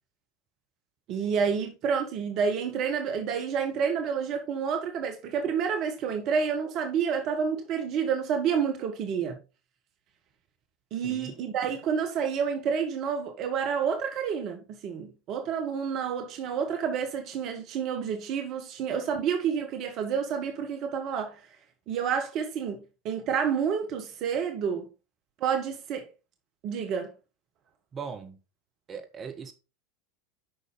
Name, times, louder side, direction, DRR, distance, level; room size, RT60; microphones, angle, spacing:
voice 1, 1.1-9.4 10.9-21.4 21.9-24.8 25.4-26.1 26.6-27.1, right 7 dB, 45° right, 1.6 m, -29 dB
voice 2, 27.9-28.4 28.9-29.5, right 6 dB, 30° right, 1.8 m, -39 dB
9.2 x 6.2 x 3.9 m
figure-of-eight pair, 80°, 0 cm